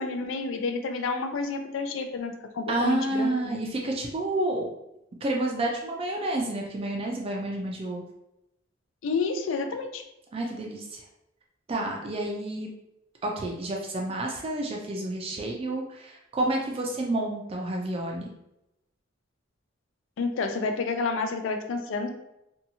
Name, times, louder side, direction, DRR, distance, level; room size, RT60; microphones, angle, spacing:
voice 1, 0.0-3.6 9.0-10.0 20.2-22.1, left 4 dB, 75° left, 6 dB, 0.4 m, -29 dB
voice 2, 2.7-4.7 5.2-8.1 10.3-11.0 11.7-12.7 13.2-18.3, right 2 dB, 30° right, 0 dB, 0.3 m, -29 dB
2.7 x 2.3 x 2.7 m, 0.87 s
head